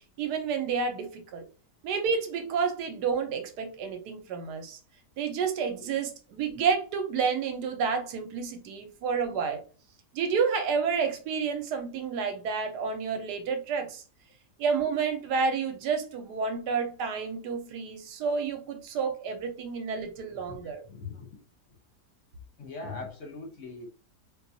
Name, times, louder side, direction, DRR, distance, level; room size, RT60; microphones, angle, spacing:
voice 1, 0.2-1.4 1.8-4.8 5.2-9.6 10.1-14.0 14.6-20.8, right 5 dB, 80° right, 1.2 m, -30 dB
voice 2, 20.8-21.4 22.6-23.9, left 3 dB, 55° left, 1.0 m, -41 dB
4.2 x 2.3 x 2.6 m
omnidirectional pair, 1.7 m